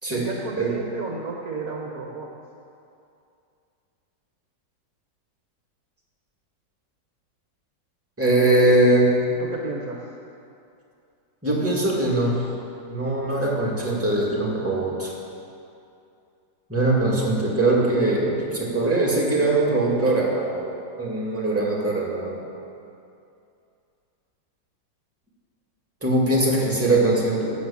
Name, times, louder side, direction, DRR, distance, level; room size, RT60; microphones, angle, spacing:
voice 1, 0.1-2.3 9.4-10.0 26.6-26.9, right 4 dB, 60° right, 0 dB, 1.4 m, -33 dB
voice 2, 8.2-9.1 11.4-12.4 12.9-15.1 16.7-20.7 21.0-22.4 26.0-27.5, right 2 dB, 5° right, -4 dB, 2.4 m, -21 dB
16.5 x 6.5 x 7.2 m, 2.6 s
omnidirectional pair, 1.9 m